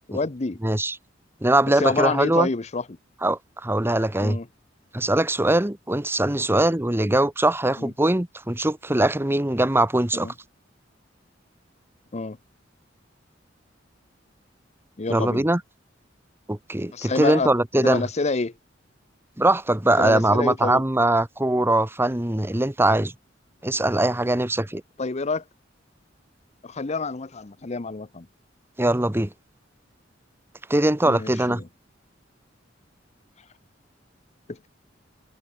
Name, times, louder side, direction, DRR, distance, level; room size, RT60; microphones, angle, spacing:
voice 1, 0.1-0.6 1.8-2.8 4.2-4.5 7.8-7.9 10.1-10.3 12.1-12.4 15.0-15.5 16.9-17.5 17.8-18.5 20.0-20.8 25.0-25.4 26.6-28.3 31.0-31.6 34.5-34.7, left 3 dB, 35° left, 0.8 m, -27 dB
voice 2, 0.6-1.0 1.4-2.5 3.2-4.4 4.9-10.3 15.1-15.6 16.5-18.1 19.4-23.1 23.6-24.8 28.8-29.3 30.7-31.6, right 1 dB, 15° right, 1.1 m, -22 dB
head